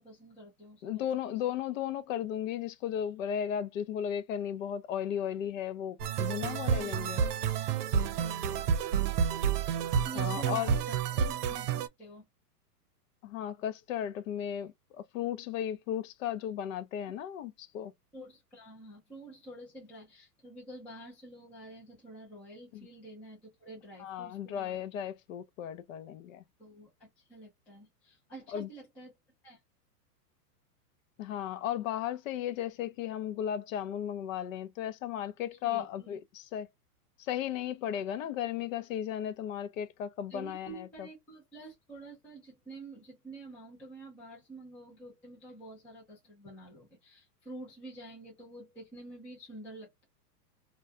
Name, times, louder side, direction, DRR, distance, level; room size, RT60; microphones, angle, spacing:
voice 1, 0.0-1.3 6.8-7.6 8.1-8.5 10.0-11.7 12.0-12.2 18.1-24.8 26.6-29.2 29.4-29.6 35.6-36.2 40.3-50.0, right 2 dB, 5° left, 0.3 m, -48 dB
voice 2, 0.8-7.2 10.1-10.8 13.2-17.9 22.7-22.9 24.0-26.4 28.5-28.7 31.2-36.7 37.2-41.1, left 10 dB, 55° left, 0.5 m, -35 dB
sound 1, 6.0-11.9, right 7 dB, 70° right, 0.7 m, -30 dB
2.3 x 2.2 x 2.4 m
hypercardioid pair, 135°, 48 cm